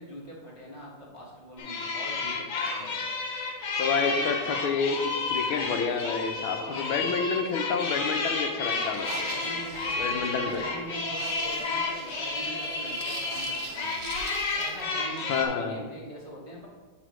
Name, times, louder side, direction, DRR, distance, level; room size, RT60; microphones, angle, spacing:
voice 1, 0.0-3.0 4.0-4.3 6.5-7.3 9.2-13.9 14.5-16.7, equal, 25° right, -6 dB, 0.8 m, -43 dB
sound 1, 1.6-15.5, left 3 dB, 60° left, 1.5 m, -31 dB
voice 2, 3.8-9.3 10.0-10.6 15.3-15.8, left 5 dB, 80° left, 5 dB, 1.5 m, -29 dB
sound 2, 8.9-14.9, right 6 dB, 80° right, 1.6 m, -43 dB
7.8 x 6.2 x 3.1 m, 1.5 s
omnidirectional pair, 2.4 m